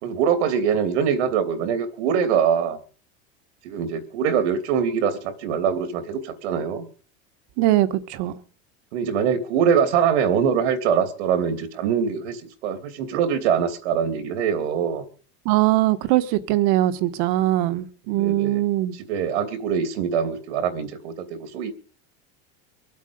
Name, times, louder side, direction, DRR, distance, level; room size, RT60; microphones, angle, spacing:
voice 1, 0.0-2.8 3.6-6.8 8.9-15.0 18.1-18.6 19.1-21.7, right 7 dB, 85° right, 2.9 m, -23 dB
voice 2, 7.6-8.4 15.4-18.9, right 15 dB, 55° right, 1.6 m, -21 dB
24.5 x 8.4 x 5.3 m
supercardioid pair, 155°, 33 cm